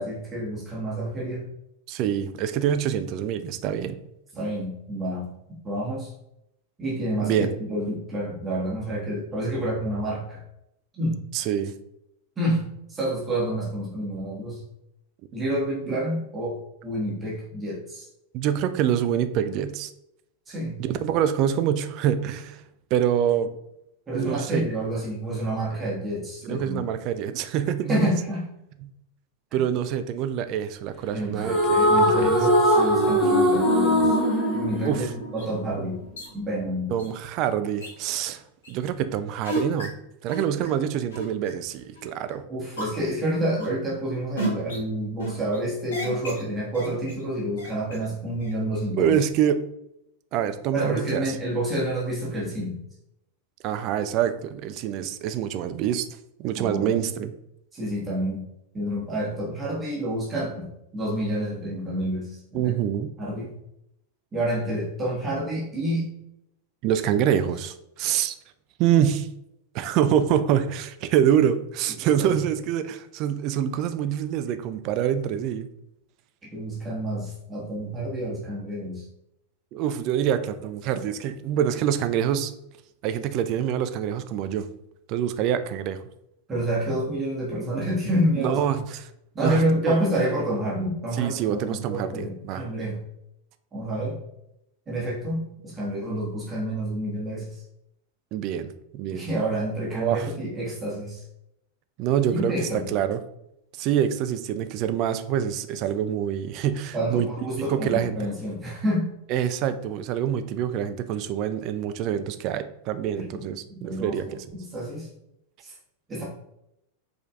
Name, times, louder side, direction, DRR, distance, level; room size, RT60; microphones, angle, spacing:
voice 1, 0.0-1.5 4.3-5.3 5.6-6.1 6.8-10.4 10.9-11.2 12.4-14.6 15.3-18.1 20.5-20.8 24.1-26.8 27.9-28.4 29.5-29.6 31.1-34.1 34.5-36.0 36.3-36.9 42.5-49.2 50.7-52.7 56.6-57.0 57.7-58.4 58.7-62.7 63.2-63.5 64.3-66.1 67.4-67.5 72.0-72.4 76.4-79.0 86.5-88.8 89.3-93.0 93.7-94.2 94.9-97.6 99.1-101.2 102.3-102.9 106.9-109.1 113.1-113.5 113.7-115.1 115.6-115.7 116.1-116.2, right 1 dB, 20° right, -5 dB, 1.3 m, -28 dB
voice 2, 1.9-4.0 7.2-7.5 11.3-11.7 15.9-16.0 18.3-19.9 20.8-22.6 22.9-23.5 24.1-24.6 26.4-28.1 28.8-28.9 29.5-32.4 34.9-35.1 36.9-38.4 38.7-39.9 40.2-42.4 48.9-49.6 50.3-51.3 53.6-56.1 56.4-57.3 62.5-63.1 66.8-68.3 68.8-69.3 69.7-75.7 79.7-82.5 83.0-84.6 85.1-86.1 88.4-89.0 89.4-89.6 89.9-90.0 91.2-92.6 98.3-99.3 99.9-100.3 102.0-103.2 103.8-107.3 107.7-108.2 109.3-114.4, right 9 dB, 40° right, 11 dB, 0.4 m, -26 dB
sound 1, 31.4-35.8, equal, 10° left, 1.3 m, -21 dB
sound 2, 35.4-35.5 36.2-36.3 37.0-37.1 37.8-37.9 38.6-38.7 39.4-39.9 40.3-40.7 41.1-41.5 41.9-42.3 42.8-43.2 43.6-44.0 44.4-44.8 45.2-45.6 45.9-46.4 46.7-47.2 47.6-48.1 48.4-48.8, right 2 dB, 65° left, 1.7 m, -32 dB
5.0 x 3.8 x 2.4 m, 0.82 s
figure-of-eight pair, 90°, 0 cm